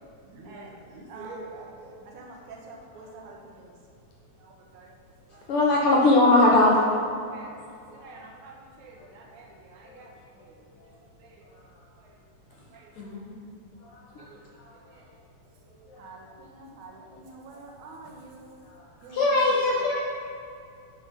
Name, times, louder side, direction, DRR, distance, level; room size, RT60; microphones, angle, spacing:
voice 1, 0.0-3.8 4.4-5.0 5.3-6.1 7.3-7.6 7.9-10.6 11.0-11.4 12.0-12.2 12.5-12.9 14.2-15.1 16.0-18.6 19.0-20.0, right 2 dB, 85° right, -1 dB, 2.5 m, -47 dB
voice 2, 5.5-6.8 14.2-14.3 19.1-20.0, left 2 dB, 70° left, -3 dB, 1.4 m, -19 dB
voice 3, 7.5-8.2 9.0-9.3 9.8-11.0 11.4-11.9 12.5-12.6 12.9-15.2 15.7-16.3 16.9-17.2 17.5-17.7 18.6-19.0, left 3 dB, 85° left, -4 dB, 2.7 m, -51 dB
9.4 x 3.8 x 5.5 m, 2.5 s
omnidirectional pair, 3.3 m